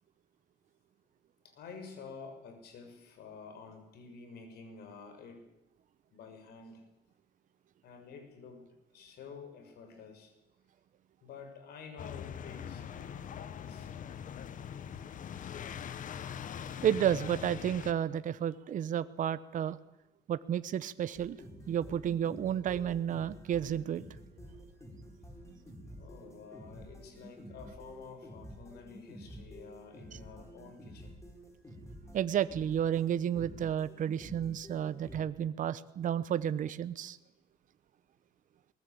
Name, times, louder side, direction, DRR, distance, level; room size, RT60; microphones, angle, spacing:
voice 1, 1.4-5.5 6.1-6.8 7.8-10.3 11.2-14.0 26.0-31.2, left 5 dB, 70° left, 6 dB, 6.4 m, -50 dB
sound 1, 12.0-17.9, left 8 dB, 50° left, 1.4 m, -42 dB
voice 2, 16.8-19.8 20.3-21.4 21.7-24.0 32.1-37.2, right 9 dB, 50° right, 15 dB, 0.9 m, -31 dB
sound 2, 21.1-35.2, equal, 15° left, 5.8 m, -50 dB
22.0 x 19.0 x 8.5 m, 0.93 s
cardioid pair, 110°, 17 cm